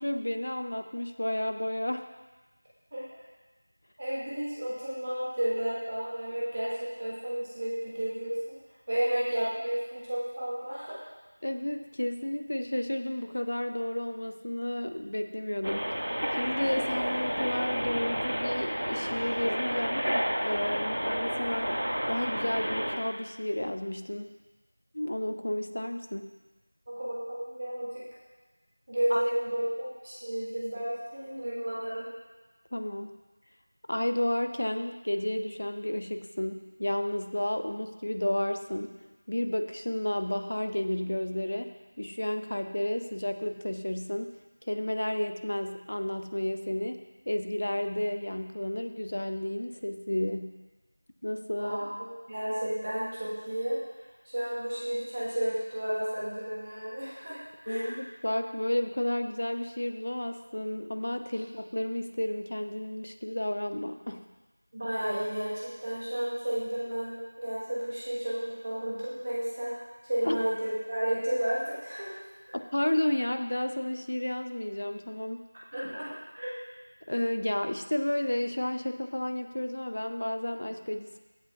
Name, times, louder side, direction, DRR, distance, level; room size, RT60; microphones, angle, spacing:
voice 1, 0.0-2.1 11.4-20.1 20.4-21.7 22.1-24.3 24.9-26.3 29.1-29.2 32.7-33.1 33.9-38.9 39.3-44.3 44.6-50.5 51.2-51.8 57.7-64.2 70.2-70.4 72.5-75.4 77.1-81.2, left 1 dB, 40° left, 7 dB, 0.5 m, -32 dB
voice 2, 4.0-8.6 8.9-11.0 26.9-28.0 28.9-32.1 51.6-53.8 54.2-57.9 64.7-72.2 75.7-76.5, right 1 dB, 20° right, -8 dB, 1.3 m, -32 dB
sound 1, 15.6-23.0, equal, 70° right, 1.7 m, -31 dB
16.0 x 8.2 x 2.4 m, 1.2 s
figure-of-eight pair, 180°, 0 cm